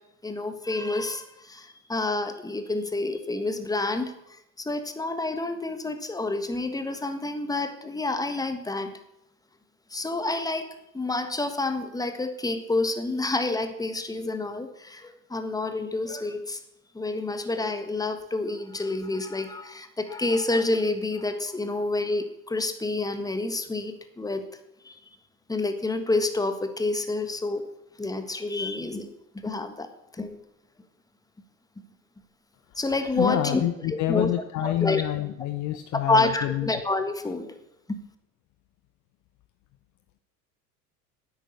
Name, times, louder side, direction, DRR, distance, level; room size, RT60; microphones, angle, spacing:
voice 1, 0.2-8.9 9.9-16.6 16.9-24.4 24.8-25.0 25.5-27.6 28.0-29.1 29.4-29.9 30.1-30.3 32.8-33.6 33.9-34.3 34.6-35.0 35.9-37.5 37.9-38.0, left 2 dB, 10° left, 8 dB, 1.5 m, -28 dB
voice 2, 33.1-36.7, left 13 dB, 40° left, 10 dB, 0.8 m, -27 dB
10.5 x 8.9 x 8.3 m, 0.84 s
figure-of-eight pair, 75°, 48 cm